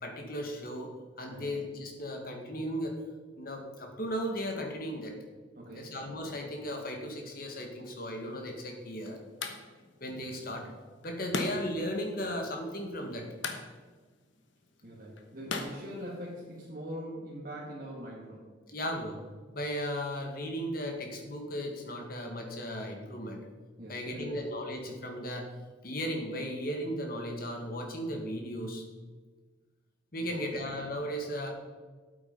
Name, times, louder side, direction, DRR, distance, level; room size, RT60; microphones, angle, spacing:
voice 1, 0.0-0.9 1.2-3.0 3.4-5.2 5.7-9.2 10.0-10.7 11.0-13.3 18.7-19.2 19.5-23.4 23.9-25.5 25.8-28.8 30.1-31.5, equal, 50° left, 3 dB, 1.7 m, -36 dB
voice 2, 5.6-5.9 14.8-18.5 23.8-24.4 30.2-30.6, equal, 45° right, -7 dB, 2.1 m, -42 dB
sound 1, 8.2-16.7, left 3 dB, 75° left, 1.2 m, -42 dB
8.6 x 8.5 x 5.4 m, 1.4 s
head